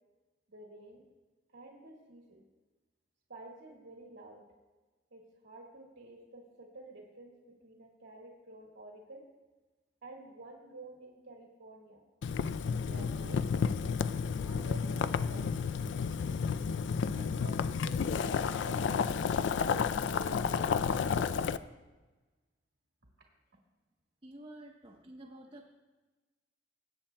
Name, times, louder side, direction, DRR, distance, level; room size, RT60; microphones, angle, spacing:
voice 1, 0.5-1.0 1.5-2.4 3.3-4.5 5.1-9.2 10.0-12.0 12.6-14.0 14.3-15.8 17.1-19.5 19.7-21.4, right 2 dB, 90° right, -1 dB, 1.6 m, -51 dB
Boiling, 12.2-21.6, left 6 dB, 75° left, 0.3 m, -31 dB
voice 2, 24.2-25.7, right 1 dB, 25° right, 0 dB, 0.7 m, -50 dB
21.0 x 8.6 x 2.2 m, 1.2 s
head